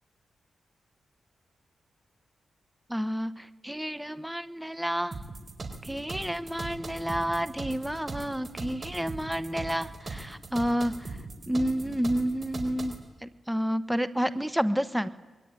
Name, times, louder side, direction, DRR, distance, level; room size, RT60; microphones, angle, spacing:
voice 1, 2.9-5.2 5.8-11.2 11.5-15.1, equal, 5° right, 12 dB, 1.0 m, -30 dB
sound 1, 5.1-13.0, right 3 dB, 35° right, 4.5 m, -39 dB
25.5 x 22.0 x 9.8 m, 1.2 s
wide cardioid pair, 110°, 0 cm